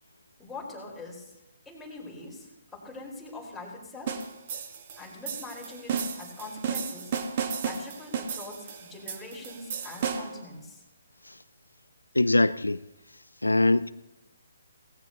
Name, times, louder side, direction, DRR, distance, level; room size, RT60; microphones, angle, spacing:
voice 1, 0.4-1.3 1.6-4.3 5.0-7.1 7.6-10.8, left 2 dB, 5° left, -5 dB, 4.5 m, -43 dB
sound 1, 4.1-10.4, right 6 dB, 40° right, 1.4 m, -34 dB
voice 2, 12.1-12.8 13.4-13.9, left 2 dB, 85° left, 15 dB, 0.4 m, -22 dB
18.0 x 16.5 x 2.9 m, 0.98 s
figure-of-eight pair, 135°, 0 cm